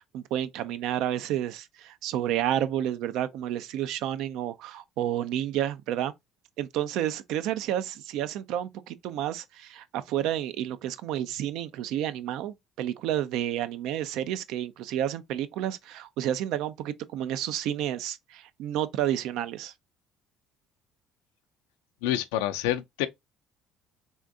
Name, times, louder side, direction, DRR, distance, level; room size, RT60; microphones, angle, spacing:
voice 1, 0.0-6.1 6.6-19.7, right 11 dB, 70° right, 0.4 m, -30 dB
voice 2, 22.0-23.1, left 12 dB, 85° left, 0.4 m, -27 dB
3.5 x 2.6 x 2.5 m
hypercardioid pair, 70°, 0 cm